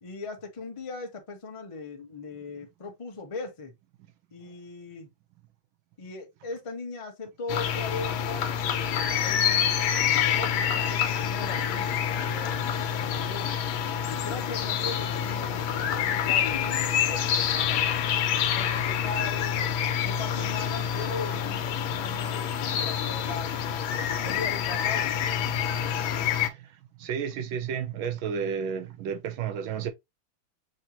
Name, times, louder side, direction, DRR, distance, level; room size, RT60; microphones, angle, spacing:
voice 1, 0.0-3.7 4.3-5.1 6.0-9.6 10.0-13.5 14.1-17.8 18.4-23.5 23.9-25.3, left 3 dB, 35° left, 0.5 m, -39 dB
sound 1, 7.5-26.5, left 8 dB, 85° left, 1.5 m, -27 dB
voice 2, 26.4-26.7 27.0-29.9, right 7 dB, 80° right, 1.5 m, -32 dB
6.2 x 2.8 x 2.8 m
omnidirectional pair, 2.2 m